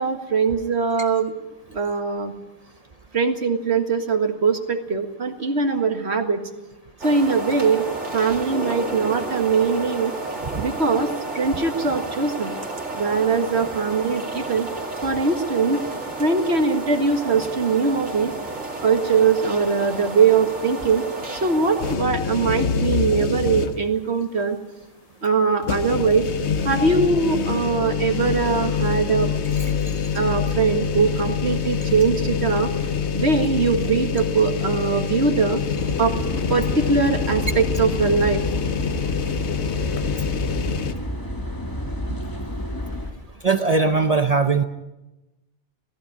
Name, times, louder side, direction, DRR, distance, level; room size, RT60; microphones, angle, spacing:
voice 1, 0.0-1.3 1.7-2.3 3.1-6.4 7.0-7.9 8.1-10.1 10.6-11.1 11.3-12.5 12.9-14.7 15.0-15.8 16.2-18.3 18.8-21.0 21.4-24.6 25.2-26.3 26.6-29.3 30.1-32.7 33.1-35.6 36.0-36.1 36.5-38.4, right 4 dB, 70° right, 5 dB, 2.0 m, -21 dB
sound 1, 7.0-22.0, right 2 dB, 90° right, 3.1 m, -32 dB
sound 2, 21.8-24.0 24.4-24.5 25.6-40.9, left 6 dB, 75° left, 1.3 m, -25 dB
sound 3, 35.7-43.1, equal, 20° left, 1.7 m, -30 dB
voice 2, 43.4-44.6, right 4 dB, 35° right, 8 dB, 0.8 m, -19 dB
17.5 x 15.0 x 9.7 m, 1.0 s
omnidirectional pair, 1.2 m